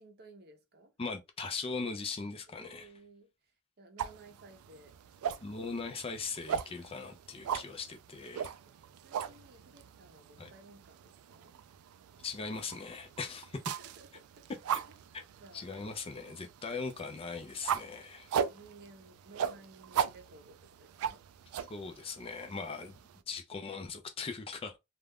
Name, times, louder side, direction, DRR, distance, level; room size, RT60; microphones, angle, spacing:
voice 1, 0.0-0.9 2.5-5.5 9.0-11.6 13.8-14.1 14.9-15.0 15.3-15.7 15.9-16.5 17.9-18.1 18.5-21.2, right 3 dB, 50° right, 0.7 m, -57 dB
voice 2, 1.0-2.9 5.4-8.5 10.4-10.5 12.2-13.6 14.7-14.8 15.1-15.2 15.5-18.3 21.6-23.0 23.3-24.8, left 4 dB, 25° left, 0.4 m, -40 dB
sound 1, 4.0-23.2, right 8 dB, 75° right, 0.3 m, -39 dB
2.4 x 2.1 x 3.4 m
head